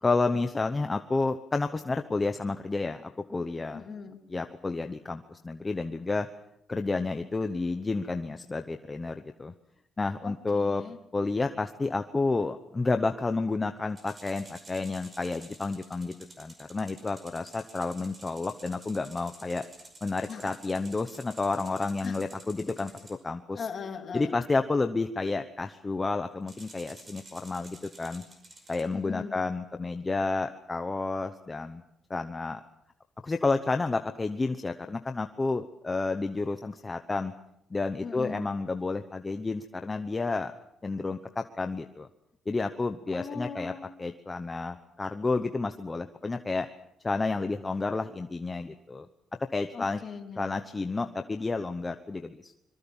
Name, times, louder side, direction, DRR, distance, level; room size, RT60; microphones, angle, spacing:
voice 1, 0.0-3.8 4.3-6.3 6.7-9.5 10.0-10.8 11.1-19.6 20.0-23.7 24.1-28.2 28.7-31.8 32.1-32.6 33.2-37.3 37.7-40.5 40.8-42.1 42.5-43.7 44.0-46.7 47.0-49.1 49.5-50.0 50.4-52.5, left 3 dB, 15° left, 7 dB, 0.9 m, -30 dB
voice 2, 3.7-4.2 10.2-11.0 20.3-20.4 22.0-22.1 23.5-24.3 28.9-29.3 38.0-38.4 43.1-43.8 49.7-50.5, left 5 dB, 35° left, 4 dB, 3.2 m, -39 dB
sound 1, 13.9-23.2 26.5-28.8, right 2 dB, 20° right, 5.4 m, -51 dB
25.5 x 23.0 x 7.2 m, 0.80 s
cardioid pair, 175°, 0 cm